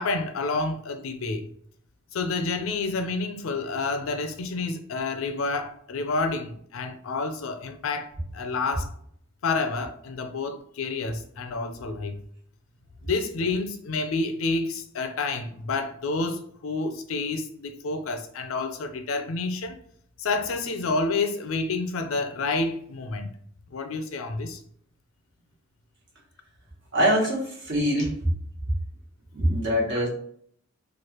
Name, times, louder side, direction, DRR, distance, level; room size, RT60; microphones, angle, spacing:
voice 1, 0.0-1.5 2.1-8.9 9.4-12.2 13.0-19.7 20.2-23.3 23.7-24.6 27.2-27.3 27.9-28.0, left 3 dB, 90° left, 0.5 m, -29 dB
voice 2, 26.9-27.4 27.7-28.2 29.4-30.1, equal, 60° right, 1.2 m, -23 dB
3.1 x 2.4 x 2.9 m
head